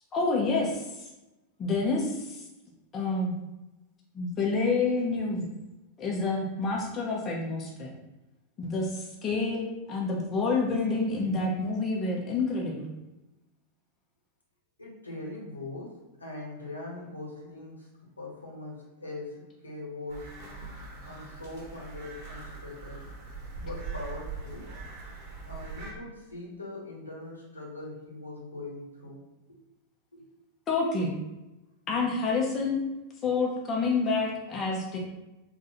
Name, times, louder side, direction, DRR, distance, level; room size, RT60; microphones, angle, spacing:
voice 1, 0.1-0.9 1.6-2.4 2.9-3.3 4.1-5.5 6.0-7.9 8.6-12.9 30.7-31.1 31.9-32.8 33.2-35.0, left 3 dB, 25° left, -2 dB, 0.8 m, -28 dB
voice 2, 14.8-20.3 21.0-23.1 23.6-24.7 25.4-29.2 29.5-29.6 30.1-30.2, left 2 dB, 80° left, -4 dB, 1.2 m, -41 dB
sound 1, 20.1-25.9, right 4 dB, 45° right, 1.2 m, -41 dB
3.6 x 2.7 x 4.2 m, 1.0 s
figure-of-eight pair, 90°, 0 cm